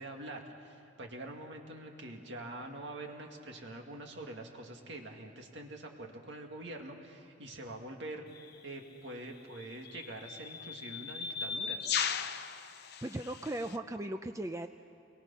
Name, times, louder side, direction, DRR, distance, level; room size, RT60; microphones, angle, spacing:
voice 1, 0.0-8.3 8.6-11.8, right 1 dB, 60° right, 2 dB, 2.2 m, -45 dB
sound 1, 8.4-8.5 9.6-13.8, left 7 dB, 55° left, 0.8 m, -37 dB
voice 2, 12.7-14.7, right 1 dB, 15° right, 7 dB, 0.5 m, -38 dB
29.5 x 22.5 x 5.7 m, 2.8 s
head